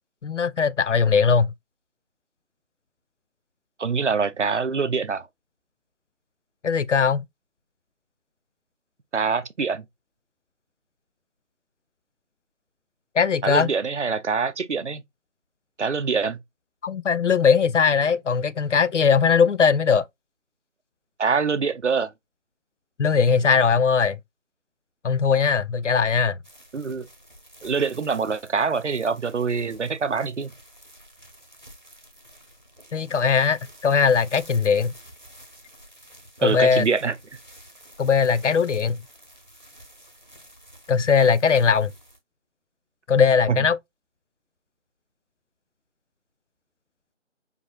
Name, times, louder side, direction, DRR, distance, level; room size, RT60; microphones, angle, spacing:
voice 1, 0.2-1.5 6.6-7.2 13.1-13.7 16.8-20.1 23.0-24.2 25.0-26.4 32.9-34.9 36.4-36.8 38.0-39.0 40.9-41.9 43.1-43.8, left 6 dB, 75° left, 0.5 m, -20 dB
voice 2, 3.8-5.3 9.1-9.8 13.4-15.0 15.8-16.4 21.2-22.1 26.7-27.1 27.6-30.5 36.4-37.2 43.5-43.7, right 5 dB, 70° right, 0.6 m, -24 dB
sound 1, 26.4-42.2, equal, 40° right, 0.9 m, -50 dB
5.2 x 2.4 x 2.3 m
figure-of-eight pair, 175°, 37 cm